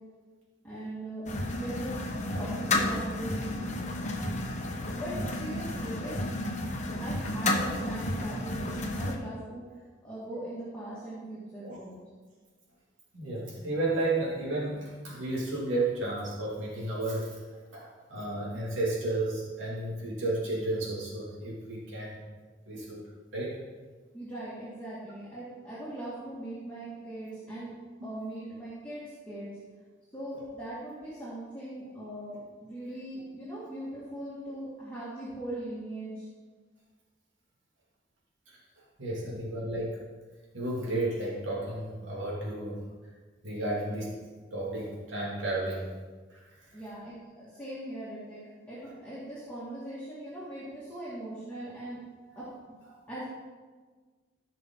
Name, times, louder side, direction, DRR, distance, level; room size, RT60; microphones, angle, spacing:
voice 1, 0.6-2.0 2.3-3.5 5.0-6.2 7.0-9.6 10.0-12.0 24.1-29.6 30.1-36.3 39.3-39.4 46.7-48.4 48.7-52.0 52.4-52.8 53.1-53.3, right 1 dB, 5° left, -11 dB, 2.2 m, -40 dB
sound 1, 1.3-9.2, left 1 dB, 40° left, 1.1 m, -32 dB
voice 2, 13.1-17.4 17.7-22.2 22.7-23.0 23.3-23.6 38.5-38.6 39.0-40.0 40.5-42.8 43.4-44.2 44.5-45.9 46.3-46.4, right 2 dB, 90° right, -5 dB, 2.7 m, -32 dB
15.0 x 5.9 x 3.9 m, 1.4 s
head